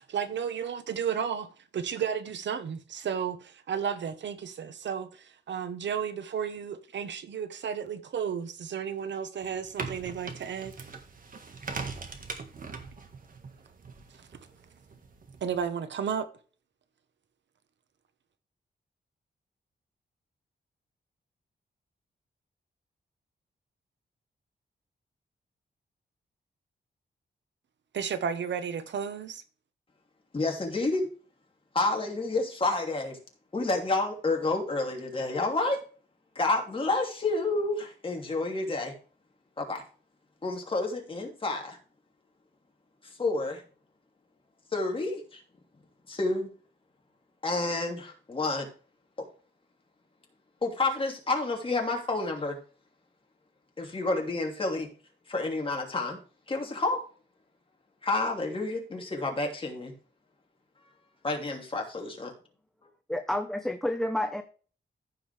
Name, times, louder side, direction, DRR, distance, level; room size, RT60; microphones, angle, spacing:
voice 1, 0.0-1.5 1.7-10.7 15.4-16.3 27.9-29.4, right 7 dB, 90° right, 1.1 m, -33 dB
sound 1, 9.4-15.6, right 4 dB, 50° right, 1.7 m, -41 dB
voice 2, 30.3-31.1 31.7-33.2 33.5-35.8 36.3-38.9 39.6-39.8 40.4-41.8 43.0-43.6 44.7-45.4 46.1-46.5 47.4-48.7 50.6-52.6 53.8-54.9 55.3-56.2 56.5-57.0 58.0-59.9 61.2-62.3, left 2 dB, 30° left, 2.8 m, -29 dB
voice 3, 63.1-64.4, left 1 dB, ahead, 0.7 m, -29 dB
15.0 x 5.3 x 3.4 m
wide cardioid pair, 145°, 18 cm